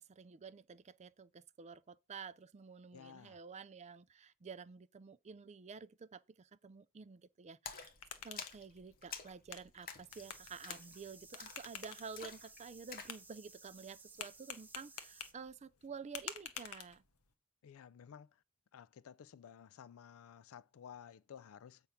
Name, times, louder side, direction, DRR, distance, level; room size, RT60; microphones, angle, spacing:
voice 1, 0.0-7.9 8.2-17.0, right 5 dB, 30° right, 0.4 m, -51 dB
voice 2, 2.9-3.4 17.6-18.3 18.7-21.8, left 8 dB, 65° left, 0.4 m, -54 dB
sound 1, 7.7-17.3, left 8 dB, 85° left, 1.0 m, -51 dB
Splash splatter, 7.7-13.2, left 6 dB, 40° left, 0.9 m, -51 dB
sound 2, 10.1-15.3, right 3 dB, 10° right, 0.8 m, -58 dB
7.9 x 3.5 x 5.7 m
head